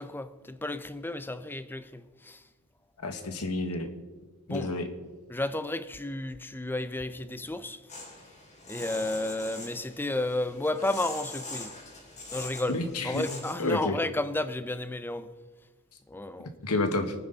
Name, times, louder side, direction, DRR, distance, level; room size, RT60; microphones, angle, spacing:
voice 1, 0.0-2.4 4.5-4.7 5.3-7.8 8.7-11.8 12.3-12.8 13.0-15.3 16.1-16.5, left 2 dB, 10° left, 0.6 m, -32 dB
voice 2, 3.0-3.9 4.5-4.9 12.7-13.2 13.6-14.0 16.6-17.1, left 2 dB, 90° left, 1.6 m, -29 dB
sound 1, 7.9-13.8, left 2 dB, 35° left, 3.5 m, -43 dB
24.5 x 9.5 x 4.0 m
head